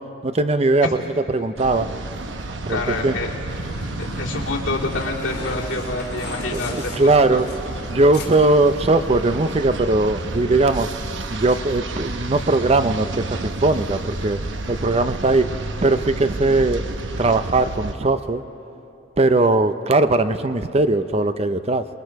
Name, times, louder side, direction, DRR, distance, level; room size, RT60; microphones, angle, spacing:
voice 1, 0.0-1.9 2.7-3.2 6.5-7.5 7.9-10.9 11.3-14.4 14.7-15.5 15.8-16.8 17.2-18.4 19.2-21.9, right 2 dB, 35° right, 11 dB, 0.6 m, -19 dB
sound 1, 1.6-17.9, right 2 dB, 70° right, 1.0 m, -31 dB
voice 2, 2.7-3.3 4.0-7.4, left 2 dB, 80° left, -3 dB, 3.0 m, -27 dB
sound 2, 3.5-9.5, left 2 dB, 55° left, 3.0 m, -36 dB
28.0 x 21.0 x 4.7 m, 2.9 s
head